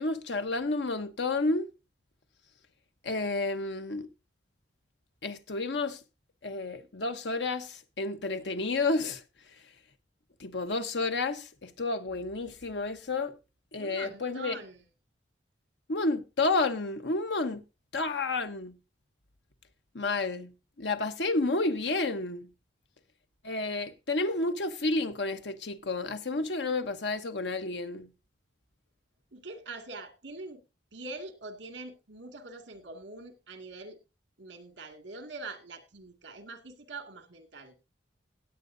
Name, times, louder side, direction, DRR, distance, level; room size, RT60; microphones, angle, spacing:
voice 1, 0.0-1.7 3.0-4.1 5.2-6.0 6.4-9.2 10.4-13.3 13.7-14.6 15.9-17.6 17.9-18.8 19.9-20.5 20.8-22.5 23.4-28.1, left 3 dB, 70° left, 1.0 m, -30 dB
voice 2, 13.8-14.8 29.3-30.6 30.9-34.0 34.4-37.7, right 3 dB, 80° right, 2.1 m, -44 dB
17.0 x 9.0 x 2.6 m
head